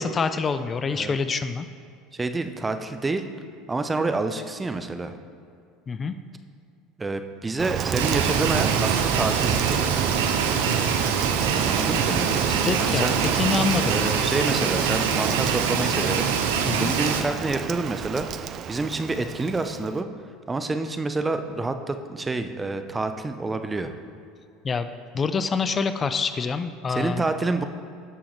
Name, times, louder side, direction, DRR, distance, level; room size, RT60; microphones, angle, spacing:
voice 1, 0.0-1.7 5.9-6.1 12.6-14.0 16.7-16.9 24.6-24.9 25.1-27.3, left 5 dB, 30° left, 11 dB, 0.4 m, -26 dB
voice 2, 2.1-3.2 3.7-5.2 7.0-10.0 11.6-13.2 13.9-18.3 18.7-20.1 20.5-23.9 26.9-27.6, right 3 dB, 20° right, 8 dB, 0.7 m, -28 dB
Rain, 7.6-20.0, right 9 dB, 45° right, 0.3 m, -28 dB
sound 1, 8.0-17.2, right 6 dB, 80° right, 0.7 m, -25 dB
15.5 x 6.2 x 3.2 m, 2.4 s
hypercardioid pair, 75°, 0 cm